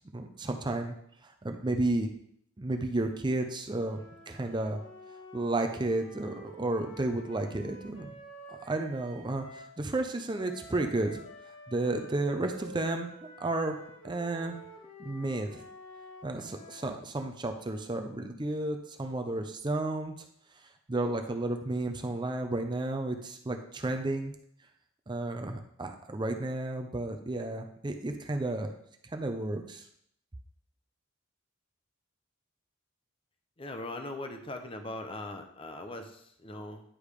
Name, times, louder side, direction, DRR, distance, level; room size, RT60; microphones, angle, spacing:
voice 1, 0.1-0.9 1.4-2.1 2.6-4.0 4.3-4.8 5.3-8.1 8.5-11.2 11.7-13.1 13.4-13.8 14.0-14.5 15.0-15.6 16.2-20.1 20.9-24.3 25.1-28.7 29.1-29.8, right 2 dB, 20° right, 5 dB, 0.5 m, -32 dB
sound 1, 3.7-9.7 10.3-17.0, equal, 70° left, 1.9 m, -50 dB
voice 2, 33.6-36.8, left 2 dB, 25° left, 5 dB, 0.7 m, -40 dB
10.0 x 3.4 x 4.9 m, 0.69 s
head